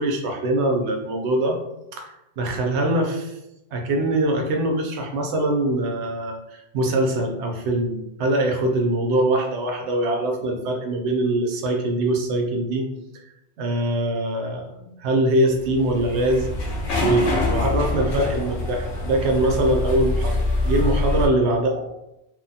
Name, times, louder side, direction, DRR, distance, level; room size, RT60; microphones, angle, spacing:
voice 1, 0.0-1.6 1.9-3.4 3.7-12.8 13.6-16.5 17.0-21.8, right 1 dB, 85° right, 2 dB, 0.9 m, -23 dB
sound 1, 15.6-21.3, left 2 dB, 85° left, 0.9 m, -25 dB
2.9 x 2.1 x 2.7 m, 0.87 s
omnidirectional pair, 1.1 m